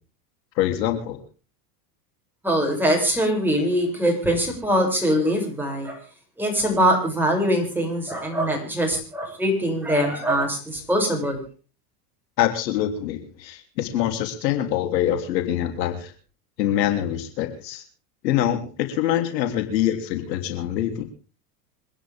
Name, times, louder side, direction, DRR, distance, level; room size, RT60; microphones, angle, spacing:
voice 1, 0.6-1.2 12.4-16.1 16.6-17.8 18.2-21.0, left 11 dB, 80° left, 6 dB, 3.3 m, -24 dB
voice 2, 2.4-6.0 6.4-11.4, equal, 5° right, 1 dB, 7.0 m, -22 dB
27.0 x 10.5 x 3.6 m, 0.37 s
supercardioid pair, 110°, 49 cm